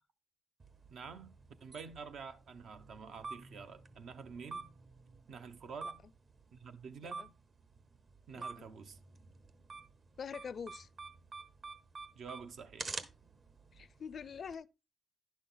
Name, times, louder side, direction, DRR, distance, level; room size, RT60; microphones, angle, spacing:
sound 1, 0.6-14.5, right 4 dB, 50° right, 1.0 m, -49 dB
voice 1, 0.9-1.3 1.6-4.7 5.3-6.0 6.5-7.3 8.3-9.0 12.1-13.0, right 5 dB, 75° right, 0.9 m, -48 dB
voice 2, 8.3-8.7 10.2-10.9 13.7-14.7, left 6 dB, 60° left, 0.4 m, -45 dB
10.5 x 6.3 x 3.8 m
cardioid pair, 90°, 0 cm